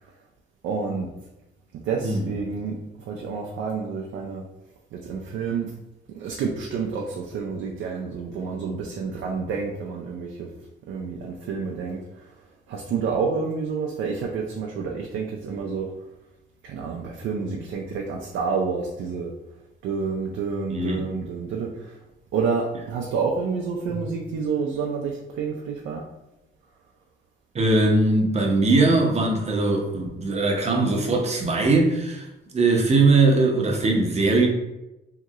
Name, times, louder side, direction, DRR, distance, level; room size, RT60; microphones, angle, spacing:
voice 1, 0.6-1.1 1.7-4.5 4.9-5.7 6.1-10.5 10.9-12.3 12.7-15.9 16.6-19.3 19.8-22.0 22.3-26.0, right 5 dB, 75° right, 0 dB, 0.4 m, -29 dB
voice 2, 20.7-21.1 23.9-24.0 27.5-32.3 32.5-34.5, right 3 dB, 35° right, 1 dB, 0.7 m, -20 dB
2.9 x 2.8 x 2.3 m, 0.95 s
cardioid pair, 90°, 20 cm